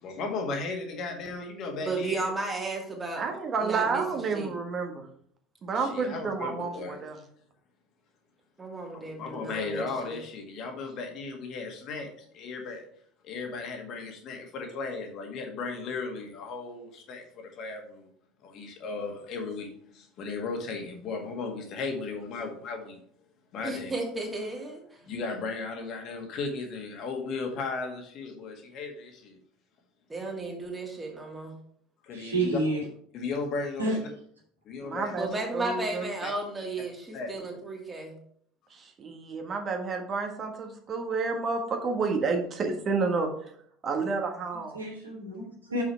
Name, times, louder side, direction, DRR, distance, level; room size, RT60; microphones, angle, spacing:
voice 1, 0.0-2.2 5.8-7.0 8.9-12.8 13.2-18.1 18.4-23.0 23.5-23.9 25.0-29.4 32.0-32.6 33.1-34.1 34.7-35.1 36.2-36.3 37.1-37.3, left 4 dB, 45° left, 3 dB, 1.9 m, -36 dB
voice 2, 1.9-3.2 3.6-4.0 4.3-4.5 8.6-10.2 23.6-24.8 30.1-31.5 35.2-38.2, right 3 dB, 15° right, -1 dB, 2.6 m, -34 dB
voice 3, 3.2-5.1 5.6-7.2 34.8-36.1 38.7-43.3 43.8-44.8, right 4 dB, 35° right, 4 dB, 1.5 m, -30 dB
voice 4, 32.1-32.8 33.8-34.0 44.7-45.8, right 1 dB, 80° right, -2 dB, 2.7 m, -29 dB
7.0 x 6.1 x 4.6 m, 0.63 s
figure-of-eight pair, 65°, 0 cm